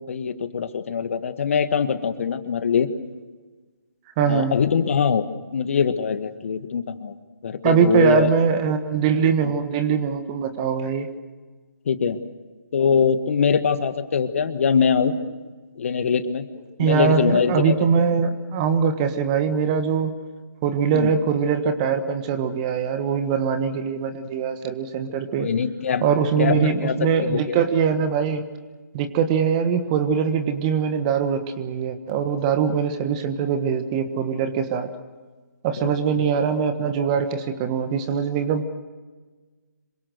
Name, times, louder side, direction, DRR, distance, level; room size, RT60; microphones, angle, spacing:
voice 1, 0.1-2.9 4.3-5.3 5.5-7.1 7.4-8.3 11.9-12.2 12.7-15.2 15.8-16.5 16.8-17.7 20.9-21.1 25.4-26.1 26.4-27.6 35.8-35.9 36.2-36.3, left 6 dB, 40° left, 10 dB, 1.6 m, -22 dB
voice 2, 4.2-4.6 7.6-11.1 16.8-20.1 20.6-25.5 26.0-28.4 28.9-34.9 35.6-38.7, right 7 dB, 20° right, 9 dB, 1.5 m, -22 dB
27.0 x 24.5 x 6.6 m, 1.3 s
figure-of-eight pair, 150°, 10 cm